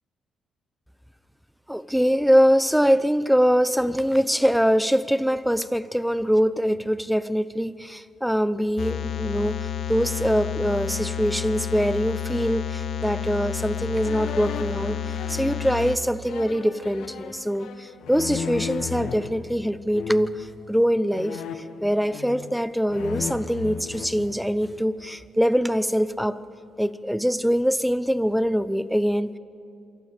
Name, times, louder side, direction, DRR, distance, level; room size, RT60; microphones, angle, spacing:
voice 1, 1.7-26.4 26.8-29.4, equal, ahead, 15 dB, 0.7 m, -23 dB
sound 1, 8.8-16.0, left 8 dB, 50° left, 1.1 m, -30 dB
sound 2, 14.0-19.3 19.9-20.4 21.1-22.6 22.9-24.8, left 7 dB, 80° left, 1.7 m, -36 dB
27.5 x 24.5 x 5.2 m, 2.5 s
cardioid pair, 90°, 0 cm